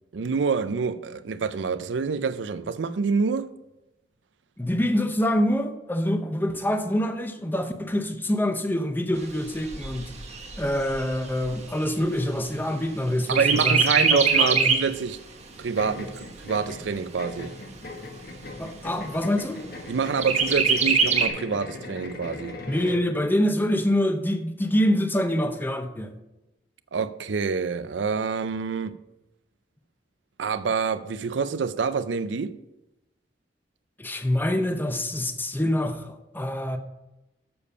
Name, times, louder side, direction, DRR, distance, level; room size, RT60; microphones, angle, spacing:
voice 1, 0.1-3.5 13.3-15.2 15.6-17.5 19.9-22.6 26.9-29.0 30.4-32.5, right 5 dB, 80° right, 0.5 m, -27 dB
voice 2, 4.6-10.1 10.6-14.7 18.6-19.6 22.7-26.1 34.0-36.8, left 1 dB, 10° left, 0.7 m, -26 dB
Chirp tweet, 9.2-12.9 13.3-15.0 15.4-15.5 15.8-16.8 17.4-17.5 17.9-18.0 18.4-18.9 20.2-21.3, right 5 dB, 40° right, 1.2 m, -24 dB
sound 1, 15.7-23.1, left 3 dB, 60° left, 1.2 m, -39 dB
7.0 x 6.9 x 5.5 m
head